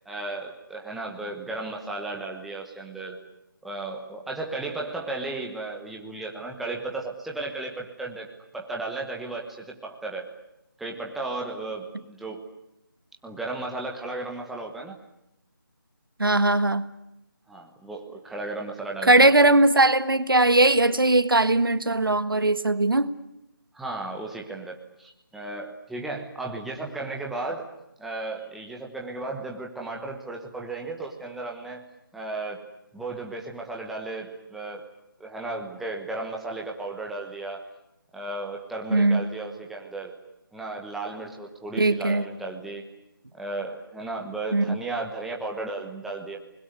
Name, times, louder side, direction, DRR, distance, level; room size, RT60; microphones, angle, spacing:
voice 1, 0.0-3.2 3.6-10.3 10.8-12.4 13.2-15.0 17.5-19.3 23.7-27.7 28.0-31.9 32.1-32.7 32.9-34.8 35.2-37.6 38.1-40.1 40.5-42.8 43.3-46.4, right 2 dB, ahead, 0 dB, 1.2 m, -34 dB
voice 2, 16.2-16.8 19.0-23.1 38.9-39.3 41.8-42.3 44.5-44.6, right 2 dB, 80° right, 13 dB, 1.6 m, -19 dB
27.0 x 21.0 x 9.6 m, 0.85 s
figure-of-eight pair, 160°, 11 cm